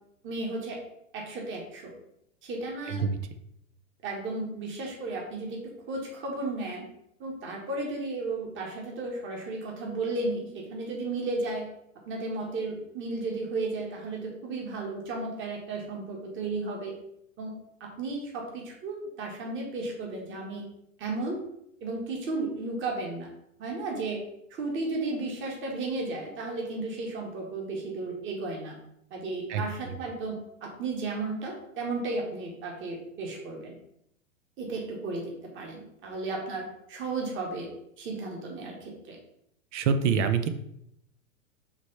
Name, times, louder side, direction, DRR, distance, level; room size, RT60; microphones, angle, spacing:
voice 1, 0.2-0.8 1.1-1.9 2.4-3.1 4.0-6.9 7.2-11.7 12.1-16.9 17.4-20.6 21.0-21.4 21.8-23.3 23.6-24.2 24.5-28.8 29.1-33.7 34.6-37.7 38.0-39.2, right 3 dB, 30° right, -1 dB, 1.8 m, -34 dB
voice 2, 29.5-30.0 39.7-40.5, right 6 dB, 55° right, 9 dB, 0.8 m, -26 dB
5.1 x 3.4 x 5.4 m, 0.76 s
hypercardioid pair, 110°, 41 cm